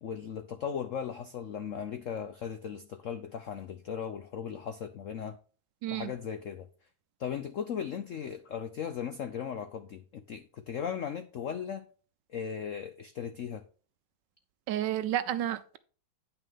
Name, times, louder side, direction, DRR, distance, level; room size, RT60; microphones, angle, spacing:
voice 1, 0.0-5.4 5.9-6.7 7.2-11.9 12.3-13.6, left 7 dB, 75° left, 0.7 m, -37 dB
voice 2, 5.8-6.1 14.7-15.8, right 12 dB, 70° right, 1.2 m, -31 dB
9.3 x 5.8 x 3.6 m
omnidirectional pair, 2.2 m